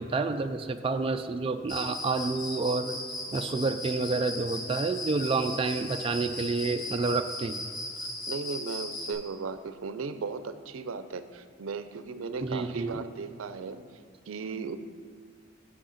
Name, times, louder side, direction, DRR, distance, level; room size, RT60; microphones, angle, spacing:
voice 1, 0.0-3.0 3.3-7.6 12.4-13.0, right 3 dB, 25° right, 7 dB, 0.3 m, -29 dB
Cricket, 1.7-9.1, left 1 dB, 75° left, 2.6 m, -37 dB
voice 2, 8.3-13.8 14.3-14.8, right 4 dB, 90° right, 11 dB, 0.5 m, -36 dB
7.8 x 6.4 x 5.7 m, 2.1 s
head